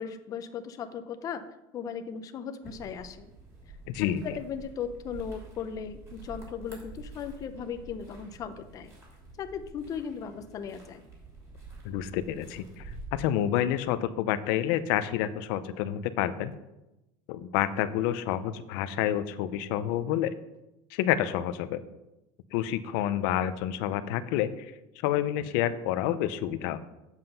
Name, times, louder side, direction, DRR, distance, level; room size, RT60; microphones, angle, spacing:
voice 1, 0.0-1.4 1.7-3.3 4.0-8.9 9.4-11.0, left 7 dB, 30° left, 9 dB, 0.7 m, -37 dB
sound 1, 2.6-13.0, right 2 dB, 20° right, 3.0 m, -48 dB
voice 2, 3.9-4.2 11.8-16.5 17.3-20.3 20.9-21.8 22.5-24.7 25.0-26.8, left 11 dB, 65° left, 12 dB, 0.7 m, -29 dB
7.8 x 7.3 x 5.5 m, 0.94 s
cardioid pair, 160°, 12 cm